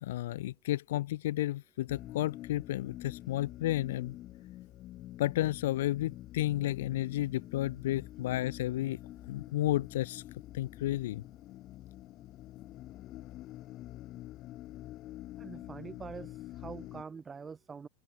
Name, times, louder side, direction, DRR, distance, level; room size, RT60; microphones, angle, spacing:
voice 1, 0.0-4.2 5.2-10.2 10.5-11.2, left 15 dB, 80° left, 0.8 m, -32 dB
sound 1, 1.9-17.0, left 15 dB, 40° left, 6.2 m, -47 dB
voice 2, 15.4-17.9, right 5 dB, 20° right, 1.3 m, -45 dB
open air
supercardioid pair, 135°, 0 cm